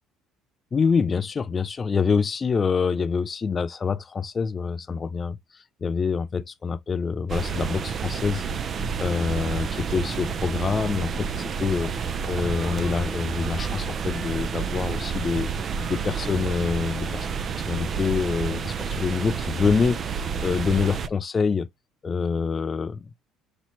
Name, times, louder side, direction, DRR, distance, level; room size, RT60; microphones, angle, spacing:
voice 1, 0.7-5.4 5.8-8.4 9.0-11.3 11.6-11.9 12.3-15.5 15.9-17.3 17.7-20.0 20.4-21.7 22.0-23.1, left 5 dB, 25° left, 0.4 m, -26 dB
sound 1, 7.3-21.1, right 6 dB, 35° right, 0.5 m, -29 dB
5.6 x 2.9 x 3.0 m
cardioid pair, 140°, 0 cm